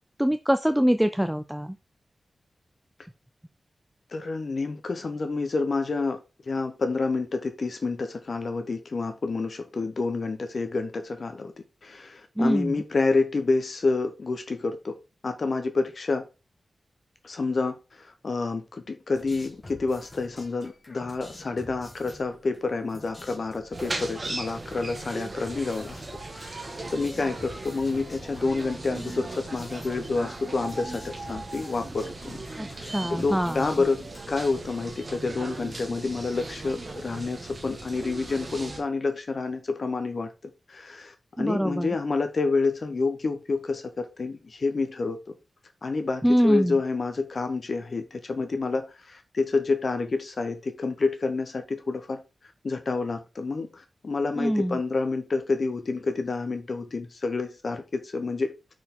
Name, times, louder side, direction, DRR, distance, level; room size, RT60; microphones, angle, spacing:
voice 1, 0.2-1.8 12.4-12.8 32.6-33.7 41.4-41.9 46.2-46.8 54.4-54.8, equal, 5° right, 0.3 m, -24 dB
voice 2, 4.1-11.5 11.8-15.0 15.2-16.3 17.2-25.9 26.3-32.4 32.7-34.0 34.3-40.3 40.7-45.3 45.8-52.2 52.6-58.5, left 3 dB, 55° left, 0.8 m, -28 dB
sound 1, 19.1-34.6, left 1 dB, 30° left, 2.0 m, -49 dB
sound 2, 23.7-38.8, right 2 dB, 35° right, 1.4 m, -38 dB
6.2 x 4.5 x 3.6 m
wide cardioid pair, 105°, 0 cm